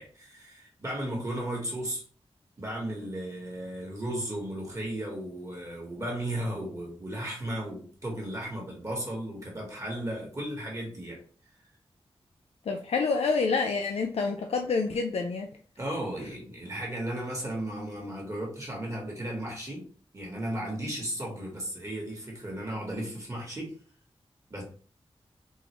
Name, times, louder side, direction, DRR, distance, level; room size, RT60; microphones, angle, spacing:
voice 1, 0.0-2.0 2.6-11.2 15.8-19.9 20.1-23.7 24.5-24.6, right 1 dB, 30° right, -2 dB, 1.2 m, -35 dB
voice 2, 12.7-15.5, left 4 dB, 90° left, 3 dB, 0.4 m, -27 dB
3.7 x 2.5 x 3.0 m, 0.43 s
wide cardioid pair, 110°, 10 cm